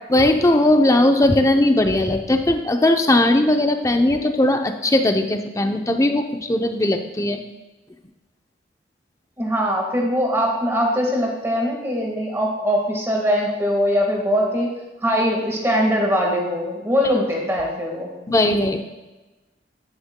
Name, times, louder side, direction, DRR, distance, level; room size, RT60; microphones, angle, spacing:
voice 1, 0.1-7.4 18.3-18.8, left 1 dB, 15° left, 5 dB, 0.6 m, -18 dB
voice 2, 9.4-14.7 15.0-18.1, equal, 15° right, 0 dB, 1.6 m, -21 dB
10.0 x 10.0 x 2.2 m, 1.1 s
head